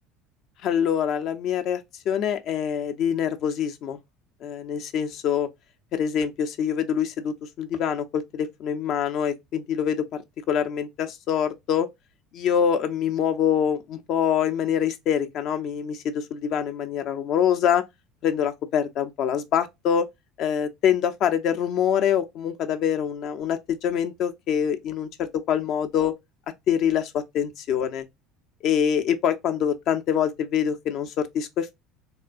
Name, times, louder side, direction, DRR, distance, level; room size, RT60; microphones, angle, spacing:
voice 1, 0.6-4.0 4.4-5.5 5.9-10.0 10.5-11.9 12.3-17.8 18.2-20.1 20.4-26.2 26.7-28.0 28.6-31.7, left 8 dB, 55° left, 0.5 m, -25 dB
3.6 x 2.3 x 2.4 m
hypercardioid pair, 70°, 0 cm